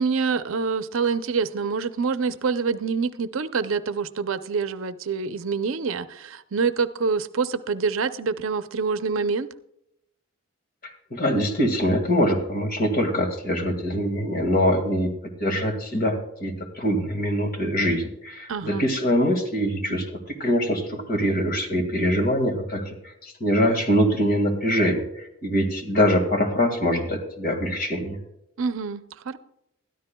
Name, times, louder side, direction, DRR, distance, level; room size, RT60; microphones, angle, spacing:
voice 1, 0.0-9.5 18.5-18.9 28.6-29.4, right 5 dB, 70° right, 12 dB, 0.6 m, -26 dB
voice 2, 10.8-15.1 15.4-28.2, equal, 45° left, 5 dB, 2.0 m, -23 dB
20.5 x 13.0 x 2.3 m, 0.81 s
head